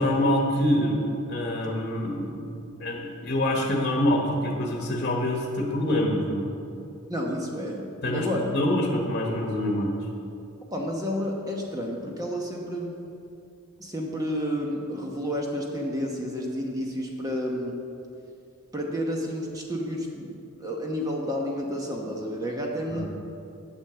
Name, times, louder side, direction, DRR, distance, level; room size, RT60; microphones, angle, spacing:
voice 1, 0.0-2.4 2.8-6.5 8.0-8.3 8.5-9.9 22.9-23.0, left 1 dB, 45° left, 0 dB, 1.3 m, -25 dB
voice 2, 7.1-8.6 10.7-12.9 13.8-17.7 18.7-23.0, equal, 15° right, -1 dB, 1.1 m, -30 dB
8.3 x 7.9 x 6.9 m, 2.6 s
head